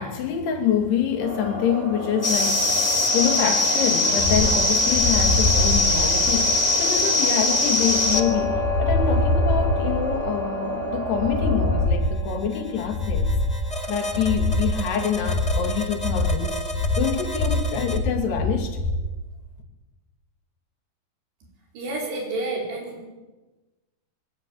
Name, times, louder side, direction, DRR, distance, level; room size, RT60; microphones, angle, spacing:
voice 1, 0.0-13.3 13.9-16.6 17.0-18.8, left 8 dB, 80° left, 5 dB, 4.6 m, -26 dB
sound 1, 1.2-11.9, right 2 dB, 20° right, 3.3 m, -32 dB
sound 2, 2.2-18.0, left 3 dB, 35° left, 0.6 m, -25 dB
sound 3, 4.2-19.1, left 1 dB, 55° left, 4.0 m, -25 dB
voice 2, 21.7-23.1, right 2 dB, 90° right, 0 dB, 6.8 m, -29 dB
22.0 x 19.0 x 8.9 m, 1.2 s
omnidirectional pair, 4.7 m